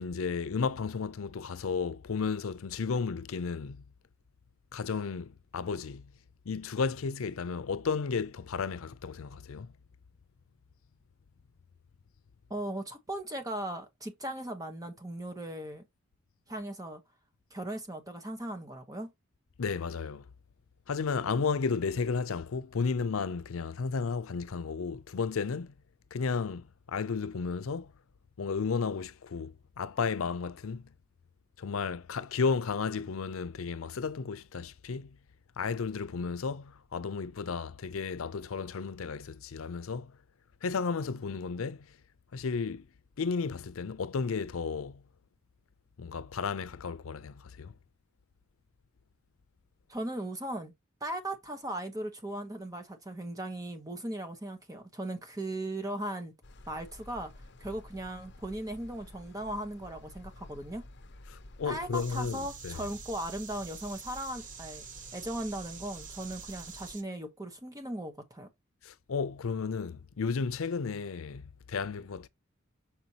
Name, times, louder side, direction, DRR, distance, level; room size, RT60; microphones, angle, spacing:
voice 1, 0.0-3.8 4.7-6.1 6.5-9.7 19.6-20.2 20.9-25.7 26.1-27.9 28.4-30.9 31.6-35.2 35.6-40.2 40.6-41.9 42.3-42.9 43.2-45.0 46.0-47.7 61.3-62.9 68.8-72.3, left 5 dB, 85° left, 0.5 m, -33 dB
voice 2, 12.5-15.8 16.5-17.0 17.5-19.1 49.9-50.7 51.0-56.3 56.7-57.3 57.6-60.9 61.6-64.8 65.1-68.5, right 1 dB, 15° right, 1.0 m, -38 dB
sound 1, 56.4-67.0, left 1 dB, 55° left, 0.9 m, -51 dB
sound 2, 61.9-67.0, right 7 dB, 40° right, 0.9 m, -47 dB
6.0 x 5.4 x 2.9 m
head